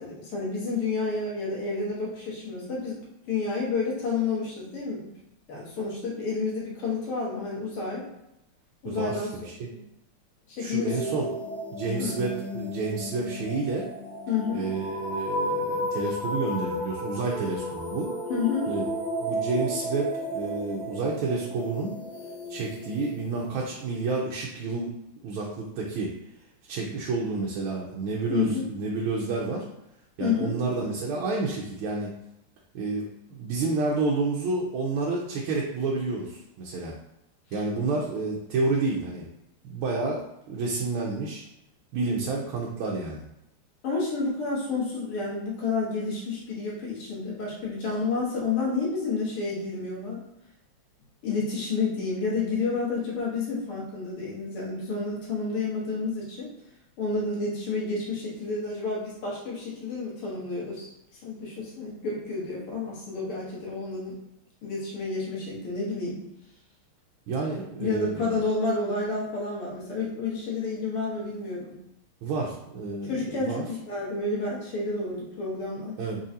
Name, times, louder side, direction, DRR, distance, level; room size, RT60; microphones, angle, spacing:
voice 1, 0.0-3.0 3.3-5.1 5.5-8.1 8.8-9.3 9.7-9.8 10.5-11.0 12.0-12.2 14.3-14.7 18.3-18.7 28.3-28.7 30.2-30.6 43.8-50.2 51.2-56.5 57.0-60.9 61.2-64.2 64.6-66.2 67.8-71.8 73.1-76.0, left 4 dB, 90° left, -5 dB, 2.4 m, -30 dB
voice 2, 8.8-9.7 10.6-11.3 11.7-13.9 14.5-18.1 18.7-18.8 19.2-21.9 22.5-24.9 25.2-26.1 26.6-29.6 30.2-32.1 32.7-36.9 37.5-39.3 39.6-40.2 40.5-41.4 41.9-43.2 67.3-68.4 72.2-73.6 76.0-76.2, right 3 dB, 75° right, -2 dB, 1.5 m, -29 dB
sound 1, 10.8-23.6, equal, 65° left, 1.9 m, -33 dB
4.8 x 3.8 x 2.7 m, 0.84 s
omnidirectional pair, 2.4 m